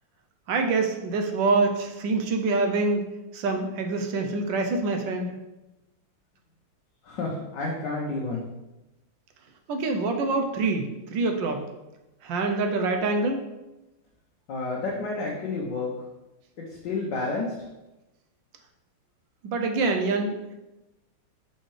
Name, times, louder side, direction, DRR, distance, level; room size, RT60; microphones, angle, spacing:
voice 1, 0.5-3.1 3.3-5.3 9.7-11.7 12.2-13.4 19.4-20.5, right 3 dB, 70° right, 4 dB, 1.2 m, -25 dB
voice 2, 7.0-8.4 14.5-16.0 16.6-17.7, left 3 dB, 65° left, -2 dB, 1.4 m, -30 dB
5.7 x 5.5 x 3.2 m, 1.0 s
omnidirectional pair, 2.3 m